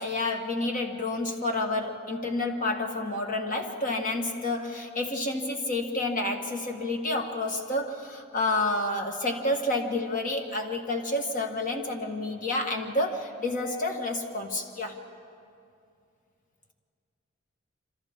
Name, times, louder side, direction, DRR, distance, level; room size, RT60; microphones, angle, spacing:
voice 1, 0.0-15.0, left 2 dB, 40° left, 3 dB, 1.7 m, -29 dB
26.5 x 26.5 x 3.7 m, 2.5 s
head